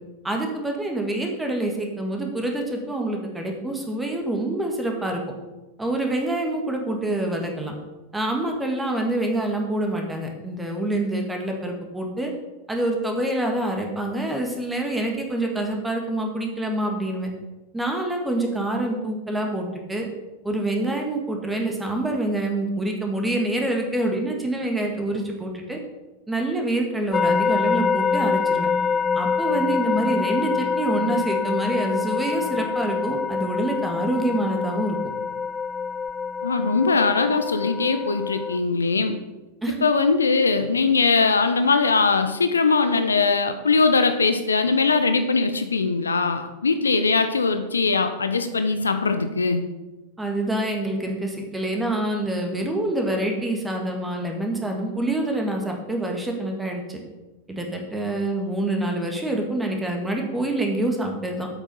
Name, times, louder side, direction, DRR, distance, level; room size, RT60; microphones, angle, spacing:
voice 1, 0.2-5.2 5.8-7.7 8.1-12.3 12.7-17.3 17.7-20.1 20.4-25.8 26.3-28.7 29.1-35.0 39.6-39.8 50.2-57.0 57.5-61.5, right 1 dB, 10° right, 2 dB, 1.8 m, -26 dB
sound 1, 27.1-38.6, left 5 dB, 20° left, 0.4 m, -25 dB
voice 2, 36.4-39.2 39.8-49.7, left 4 dB, 75° left, 9 dB, 0.7 m, -21 dB
8.2 x 7.0 x 5.6 m, 1.1 s
figure-of-eight pair, 90°, 0 cm